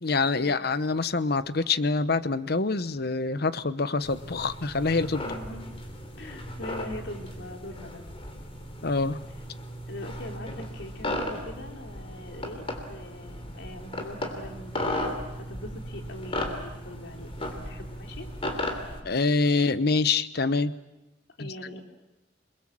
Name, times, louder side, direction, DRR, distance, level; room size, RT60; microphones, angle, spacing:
voice 1, 0.0-5.2 8.8-9.2 19.0-20.7 21.4-21.5, left 3 dB, 60° left, 13 dB, 0.9 m, -25 dB
sound 1, 4.0-19.0, left 1 dB, 30° left, 3.2 m, -36 dB
voice 2, 5.2-5.6 6.2-8.0 9.9-14.9 15.4-18.3 21.4-21.8, left 1 dB, 75° left, 3 dB, 3.5 m, -42 dB
28.0 x 22.0 x 7.6 m, 1.0 s
head